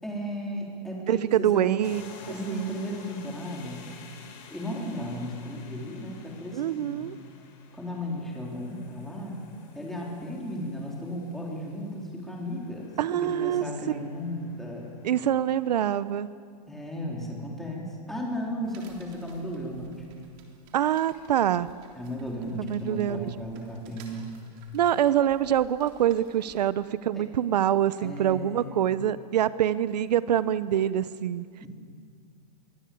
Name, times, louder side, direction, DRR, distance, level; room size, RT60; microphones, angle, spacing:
voice 1, 0.0-1.8 2.3-3.9 4.5-7.1 7.7-9.4 9.7-12.9 13.2-14.9 16.7-20.0 22.0-24.3 27.1-27.2 28.0-28.8 31.6-31.7, equal, ahead, -2 dB, 3.8 m, -35 dB
voice 2, 1.1-2.1 2.5-2.7 6.5-7.1 13.0-13.6 15.0-16.3 20.7-21.7 22.6-23.3 24.7-31.5, right 10 dB, 80° right, 16 dB, 0.9 m, -25 dB
sound 1, 1.8-15.9, left 5 dB, 35° left, 4.8 m, -51 dB
sound 2, 18.6-26.6, right 6 dB, 30° right, 3.6 m, -56 dB
28.0 x 23.5 x 8.6 m, 2.1 s
supercardioid pair, 175°, 21 cm